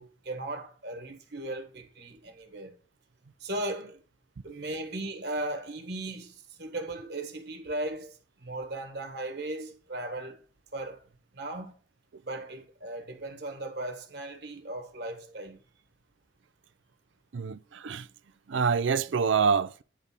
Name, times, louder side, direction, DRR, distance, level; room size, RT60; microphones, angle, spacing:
voice 1, 0.0-2.8 3.4-4.0 4.4-10.4 10.7-11.1 11.3-11.7 12.2-15.6, right 1 dB, 55° right, 1.5 m, -37 dB
voice 2, 17.3-18.1 18.5-19.8, right 6 dB, 85° right, 0.5 m, -26 dB
10.0 x 3.5 x 5.5 m
head